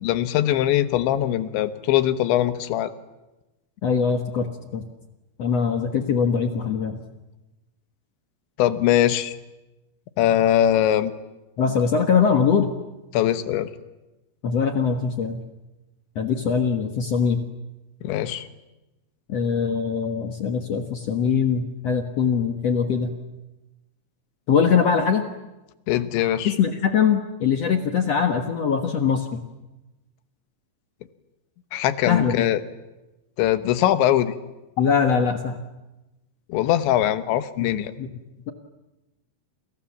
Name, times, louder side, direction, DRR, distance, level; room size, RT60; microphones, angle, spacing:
voice 1, 0.0-2.9 8.6-9.4 10.2-11.1 13.1-13.7 18.0-18.5 25.9-26.5 31.7-32.6 33.4-34.3 36.5-37.9, left 12 dB, 85° left, 11 dB, 3.5 m, -21 dB
voice 2, 3.8-4.8 5.4-7.0 11.6-12.7 14.4-15.4 16.1-17.4 19.3-23.1 24.5-25.2 26.4-29.4 32.1-32.5 34.8-35.6 37.6-37.7 38.0-38.1, left 6 dB, 65° left, 6 dB, 1.6 m, -22 dB
28.5 x 28.5 x 7.3 m, 1.0 s
omnidirectional pair, 5.1 m